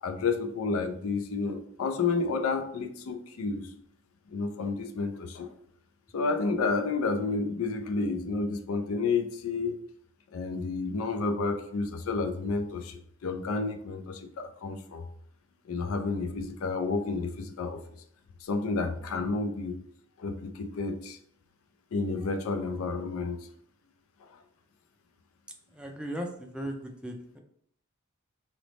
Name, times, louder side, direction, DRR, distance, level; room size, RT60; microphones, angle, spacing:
voice 1, 0.0-3.7 4.3-5.5 6.1-9.8 10.3-15.0 15.7-17.8 18.4-19.8 20.2-21.2 21.9-23.4, left 4 dB, 90° left, 8 dB, 0.4 m, -30 dB
voice 2, 25.7-27.4, equal, 5° right, 3 dB, 0.3 m, -37 dB
3.2 x 2.0 x 3.9 m, 0.65 s
head